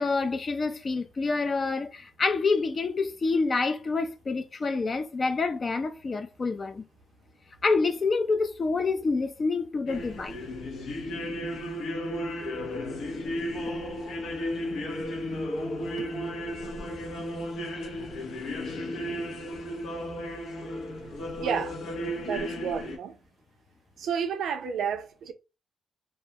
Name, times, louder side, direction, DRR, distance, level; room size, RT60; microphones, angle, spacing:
voice 1, 0.0-6.9 7.6-10.4, left 4 dB, 40° left, 0.4 m, -27 dB
sound 1, 9.9-23.0, left 1 dB, 80° left, 0.7 m, -34 dB
voice 2, 21.4-21.8 22.2-23.2 24.0-25.3, right 7 dB, 80° right, 0.4 m, -31 dB
2.2 x 2.1 x 2.7 m
cardioid pair, 80°, 0 cm